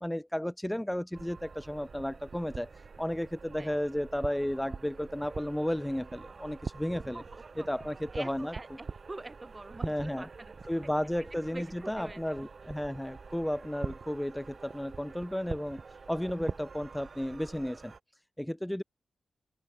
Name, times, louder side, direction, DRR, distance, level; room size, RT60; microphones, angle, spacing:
voice 1, 0.0-7.2 7.7-8.5 9.8-10.3 10.7-17.9 18.4-18.8, equal, 5° left, 0.3 m, -33 dB
sound 1, 1.1-18.0, right 4 dB, 40° right, 2.2 m, -45 dB
voice 2, 7.1-7.7 8.1-10.5 11.3-12.5, right 2 dB, 20° right, 1.2 m, -45 dB
open air
wide cardioid pair, 140°, 0 cm